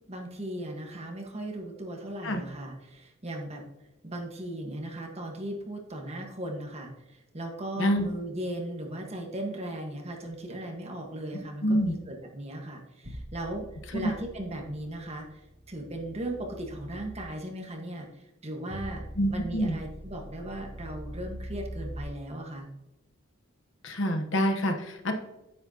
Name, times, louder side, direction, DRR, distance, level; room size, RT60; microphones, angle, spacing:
voice 1, 0.0-3.6 4.0-13.7 13.9-15.4 15.7-18.1 18.4-19.0 19.3-22.7, right 1 dB, 30° right, 1 dB, 1.5 m, -37 dB
voice 2, 11.6-11.9 13.9-14.1 19.2-19.8 23.8-25.1, equal, 60° left, 5 dB, 1.1 m, -26 dB
sound 1, 13.0-17.2 18.7-22.0, equal, 50° right, 2.6 m, -43 dB
9.6 x 8.7 x 2.9 m, 0.97 s
head